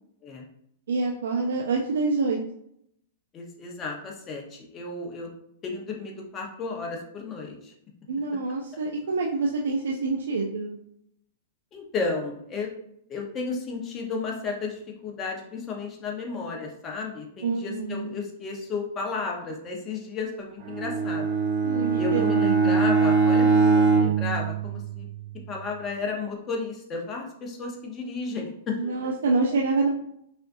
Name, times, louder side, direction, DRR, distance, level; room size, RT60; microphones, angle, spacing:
voice 1, 0.9-2.4 8.1-10.8 17.4-18.1 21.6-22.8 28.7-29.9, right 3 dB, 80° right, 0 dB, 0.5 m, -26 dB
voice 2, 3.3-5.3 5.6-7.7 8.7-8.8 11.7-12.7 13.1-21.3 22.0-25.1 25.5-29.3, left 4 dB, 25° left, 0 dB, 1.0 m, -33 dB
Bowed string instrument, 20.6-25.3, right 4 dB, 45° right, 1.2 m, -22 dB
5.6 x 2.5 x 2.7 m, 0.73 s
hypercardioid pair, 125°, 0 cm